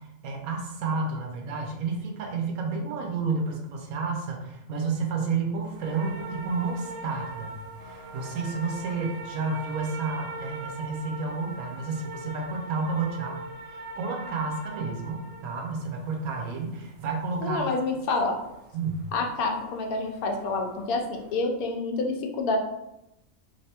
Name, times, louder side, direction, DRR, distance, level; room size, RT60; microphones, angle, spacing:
voice 1, 0.2-7.5 7.8-13.4 13.7-17.7 18.7-19.0, right 4 dB, 90° right, 1 dB, 1.1 m, -31 dB
sound 1, 5.6-20.6 20.9-21.3, right 2 dB, 70° right, 1.1 m, -41 dB
voice 2, 17.4-18.4 19.1-22.6, left 3 dB, 85° left, 3 dB, 1.1 m, -28 dB
3.2 x 2.9 x 2.8 m, 0.88 s
omnidirectional pair, 1.5 m